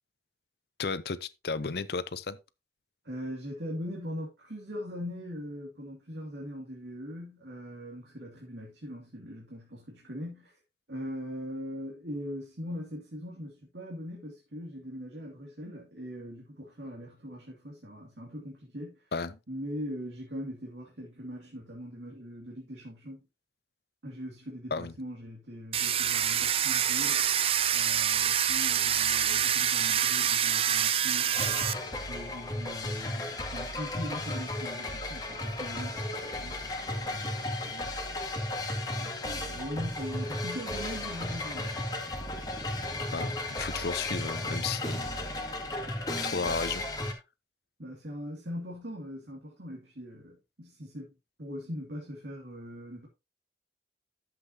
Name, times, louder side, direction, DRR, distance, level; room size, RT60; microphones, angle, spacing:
voice 1, 0.8-2.4 19.1-19.4 24.7-24.9 43.1-45.1 46.2-46.8, left 4 dB, 60° left, 0.6 m, -33 dB
voice 2, 3.0-10.6 10.9-19.0 19.5-23.3 24.0-27.2 27.7-31.6 32.1-38.0 38.9-41.8 47.8-51.1 51.4-53.1, equal, 75° right, 2.4 m, -41 dB
Domestic sounds home sounds, 25.7-31.7, right 9 dB, 30° right, 0.4 m, -26 dB
sound 1, 31.3-47.1, left 1 dB, 20° left, 2.1 m, -34 dB
12.0 x 7.6 x 2.8 m
head